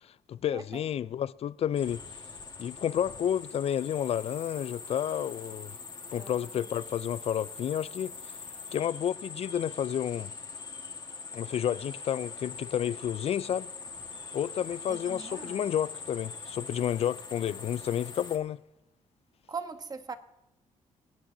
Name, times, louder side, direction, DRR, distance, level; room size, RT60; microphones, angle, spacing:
voice 1, 0.0-2.0 2.6-5.8 6.1-8.4 8.7-10.3 11.3-13.7 14.3-18.6, left 9 dB, 50° left, 0.4 m, -31 dB
sound 1, 1.7-18.4, left 4 dB, 35° left, 1.7 m, -43 dB
voice 2, 6.1-6.6 14.9-15.6 19.5-20.1, right 5 dB, 30° right, 1.0 m, -41 dB
24.5 x 8.8 x 2.7 m
cardioid pair, 95°, 13 cm